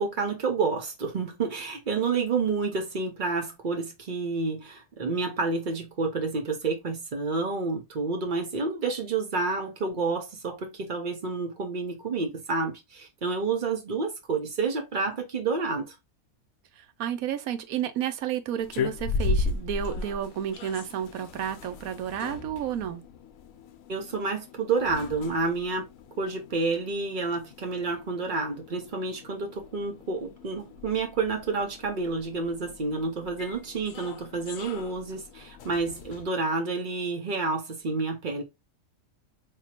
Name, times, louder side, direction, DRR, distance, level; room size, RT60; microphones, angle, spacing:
voice 1, 0.0-15.9 23.9-25.9 26.2-38.4, right 4 dB, 40° right, 0.8 m, -29 dB
voice 2, 16.8-23.0, right 9 dB, 80° right, 1.0 m, -31 dB
sound 1, 18.6-36.2, left 4 dB, 70° left, 1.0 m, -37 dB
3.5 x 2.8 x 2.8 m
omnidirectional pair, 1.5 m